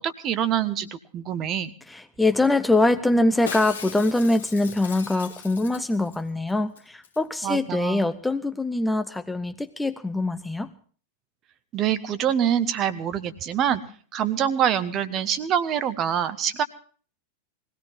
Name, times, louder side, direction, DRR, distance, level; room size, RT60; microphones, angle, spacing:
voice 1, 0.0-1.7 7.4-8.0 11.7-13.8 14.1-16.6, right 9 dB, 30° right, 12 dB, 1.2 m, -25 dB
voice 2, 1.9-10.7, left 2 dB, 5° left, 9 dB, 0.8 m, -23 dB
Shatter, 3.5-6.2 6.5-6.6 6.8-7.2 7.4-7.5, left 7 dB, 65° left, 1.8 m, -39 dB
21.5 x 17.0 x 3.5 m, 0.43 s
figure-of-eight pair, 90°, 0 cm